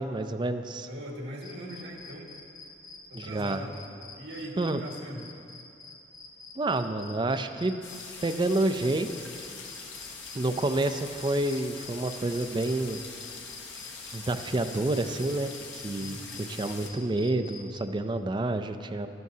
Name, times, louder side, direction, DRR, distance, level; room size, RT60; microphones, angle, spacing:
voice 1, 0.0-0.9 3.1-3.6 4.6-4.8 6.6-7.8 8.2-9.1 10.3-13.0 14.1-19.1, right 2 dB, 25° right, 8 dB, 0.4 m, -29 dB
voice 2, 0.8-2.3 3.1-3.7 4.2-5.2 16.0-16.4, right 1 dB, 70° right, -2 dB, 1.8 m, -40 dB
sound 1, 1.4-17.8, left 3 dB, 20° left, 0.8 m, -48 dB
sound 2, 7.8-16.9, left 4 dB, 85° left, 1.0 m, -43 dB
12.0 x 11.5 x 2.8 m, 2.5 s
head